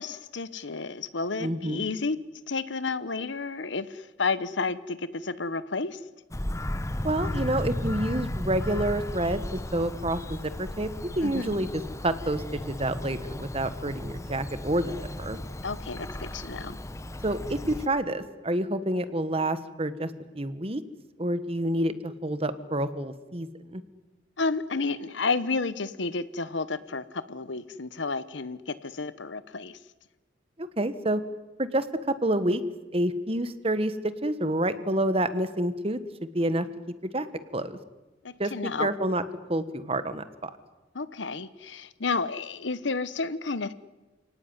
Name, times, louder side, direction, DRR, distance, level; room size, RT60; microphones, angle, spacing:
voice 1, 0.0-2.2 2.5-6.0 11.2-11.5 15.6-16.8 24.4-29.8 38.2-38.9 40.9-43.7, left 4 dB, 70° left, 15 dB, 1.1 m, -31 dB
voice 2, 1.4-1.8 7.0-9.4 9.7-10.9 11.2-14.9 15.2-15.4 17.2-20.8 21.2-23.8 30.6-31.2 31.6-32.6 32.9-36.7 37.1-37.3 37.5-37.8 38.4-39.2 39.5-40.5, right 1 dB, 30° right, 12 dB, 1.4 m, -28 dB
Bird vocalization bird call bird song, 6.3-17.9, left 1 dB, 15° left, 0.9 m, -35 dB
29.5 x 18.0 x 9.6 m, 1.2 s
head